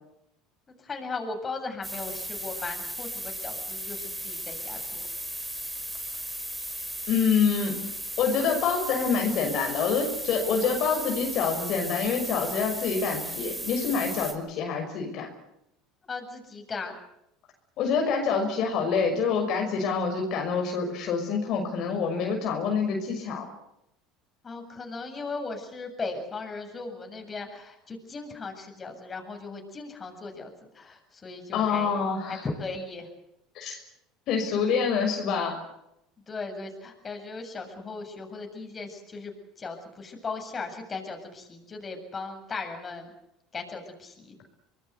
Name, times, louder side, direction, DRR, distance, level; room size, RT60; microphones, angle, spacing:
voice 1, 0.7-5.1 16.1-17.0 24.4-32.0 32.3-33.1 36.3-43.1 43.5-44.4, left 3 dB, 30° left, 4 dB, 7.8 m, -37 dB
sound 1, 1.8-14.3, right 1 dB, 5° right, 5.1 m, -36 dB
voice 2, 7.1-7.8 8.2-15.3 17.8-23.5 31.5-32.4 33.5-33.8 34.3-35.6, left 5 dB, 60° left, 3 dB, 6.1 m, -26 dB
25.5 x 20.5 x 8.3 m, 0.82 s
supercardioid pair, 85°, 0 cm